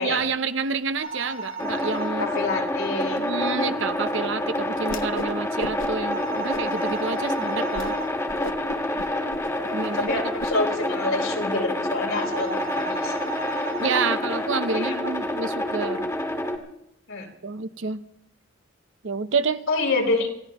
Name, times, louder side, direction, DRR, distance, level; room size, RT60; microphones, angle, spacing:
voice 1, 0.0-2.3 3.2-8.0 9.7-10.2 13.8-16.1 17.4-18.0 19.0-19.6, right 4 dB, 60° right, 11 dB, 0.8 m, -28 dB
sound 1, 1.0-2.1 6.1-8.1 12.1-14.1, right 3 dB, 85° right, 3.3 m, -35 dB
sound 2, 1.6-16.6, left 1 dB, 15° left, 1.9 m, -28 dB
voice 2, 2.2-3.2 9.1-9.2 9.5-13.1 14.7-14.9 17.1-17.3 19.7-20.3, left 3 dB, 85° left, 0 dB, 4.7 m, -27 dB
Whoosh swoosh swish, 4.8-5.3 5.6-6.1 6.5-7.0 7.4-7.5 7.7-7.9 8.3-10.5, left 2 dB, 70° left, 0.9 m, -36 dB
27.5 x 16.0 x 3.0 m, 0.76 s
head